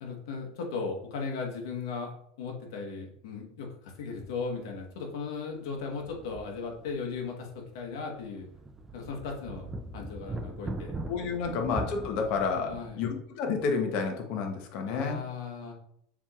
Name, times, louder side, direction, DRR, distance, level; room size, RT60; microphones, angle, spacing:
voice 1, 0.0-2.1 2.4-8.5 8.9-10.9 11.5-11.6 12.7-13.0 14.9-15.8, left 4 dB, 80° left, 1 dB, 1.1 m, -37 dB
sound 1, 4.2-4.4 4.7-4.8 5.7-7.2 7.5-7.6 8.2-12.9, right 2 dB, 15° right, 0.3 m, -40 dB
voice 2, 11.1-15.2, left 5 dB, 55° left, 4 dB, 0.8 m, -30 dB
7.0 x 3.0 x 2.4 m, 0.70 s
supercardioid pair, 135°, 2 cm